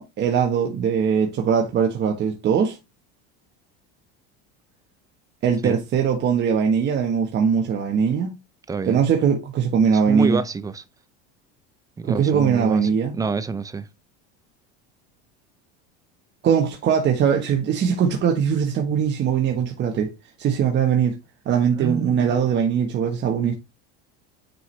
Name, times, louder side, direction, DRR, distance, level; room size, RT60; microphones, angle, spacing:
voice 1, 0.0-2.8 5.4-8.3 8.8-10.4 12.0-13.1 16.4-20.1 20.4-21.2 21.4-23.5, right 7 dB, 35° right, 1.3 m, -21 dB
voice 2, 8.7-9.0 9.9-10.8 12.0-13.9 21.8-22.4, right 4 dB, 10° right, 0.6 m, -28 dB
9.2 x 4.8 x 3.3 m
supercardioid pair, 135°, 31 cm